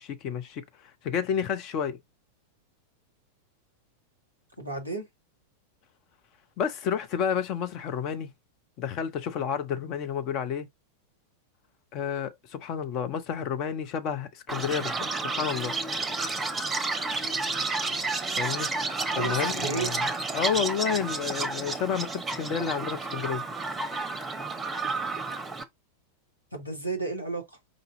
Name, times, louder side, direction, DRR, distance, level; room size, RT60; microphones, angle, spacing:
voice 1, 0.0-2.0 6.6-8.3 8.8-10.7 11.9-15.7 18.3-18.7 19.1-20.0 20.3-23.4, left 7 dB, 40° left, 0.8 m, -30 dB
voice 2, 4.6-5.1 19.2-19.9 26.5-27.5, right 3 dB, 90° left, 1.6 m, -32 dB
Chirp tweet, 14.5-25.6, right 3 dB, 15° right, 0.9 m, -31 dB
5.1 x 2.7 x 3.8 m
figure-of-eight pair, 90°, 0 cm